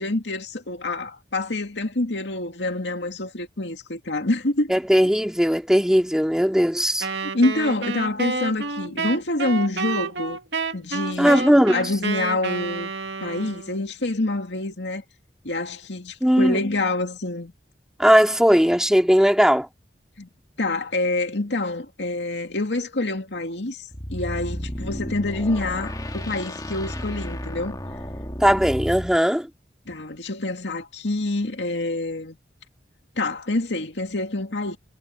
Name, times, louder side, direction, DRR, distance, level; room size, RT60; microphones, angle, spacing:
voice 1, 0.0-4.7 7.2-10.4 10.7-12.9 13.2-15.0 15.4-17.5 20.2-20.3 20.6-23.8 24.1-27.8 29.9-32.4 33.2-34.8, left 2 dB, 90° left, 2.3 m, -26 dB
voice 2, 4.7-7.1 11.2-11.8 16.2-16.6 18.0-19.7 28.4-29.5, equal, 5° right, 2.4 m, -18 dB
Wind instrument woodwind instrument, 7.0-13.8, right 4 dB, 80° right, 2.2 m, -29 dB
sound 1, 23.9-29.2, equal, 20° left, 1.9 m, -32 dB
head